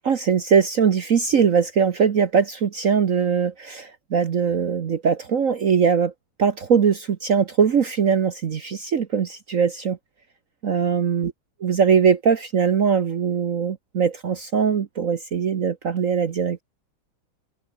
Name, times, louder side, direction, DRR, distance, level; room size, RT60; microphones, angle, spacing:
voice 1, 0.0-6.1 6.4-10.0 10.6-11.3 11.6-16.6, right 6 dB, 50° right, 1.2 m, -21 dB
omnidirectional pair, 2.2 m